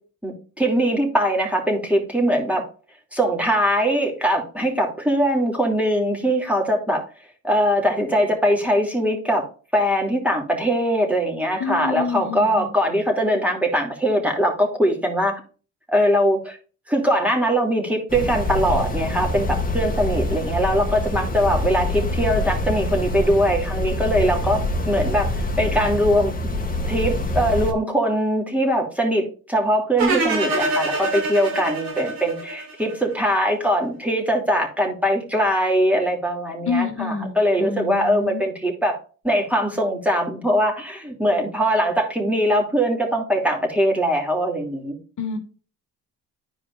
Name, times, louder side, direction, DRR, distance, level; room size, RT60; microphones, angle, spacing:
voice 1, 0.2-2.6 3.1-7.0 7.4-9.5 9.7-15.4 15.9-16.6 16.9-26.3 26.9-39.0 39.2-45.0, equal, 5° right, 0 dB, 2.8 m, -21 dB
voice 2, 11.6-12.7 36.7-38.4 45.2-45.4, left 4 dB, 55° left, 4 dB, 1.9 m, -27 dB
sound 1, 18.1-27.7, left 1 dB, 25° left, 2.0 m, -25 dB
sound 2, 30.0-33.1, right 2 dB, 80° right, 3.2 m, -24 dB
11.5 x 4.9 x 2.6 m, 0.37 s
supercardioid pair, 65°, 35 cm